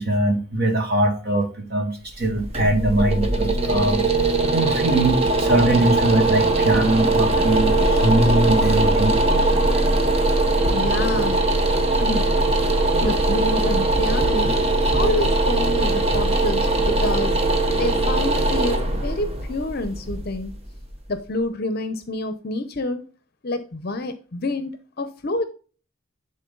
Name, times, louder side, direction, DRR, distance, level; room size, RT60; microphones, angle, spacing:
voice 1, 0.0-4.0 4.4-9.5 9.7-9.8, right 1 dB, 50° right, 3 dB, 2.2 m, -22 dB
sound 1, 2.1-21.1, right 2 dB, 30° right, 1.0 m, -20 dB
voice 2, 10.7-11.4 12.0-12.3 13.0-14.5 14.9-17.4 17.8-20.5 21.1-23.0 23.4-25.4, left 2 dB, 50° left, 10 dB, 0.7 m, -28 dB
10.5 x 3.9 x 3.8 m, 0.36 s
head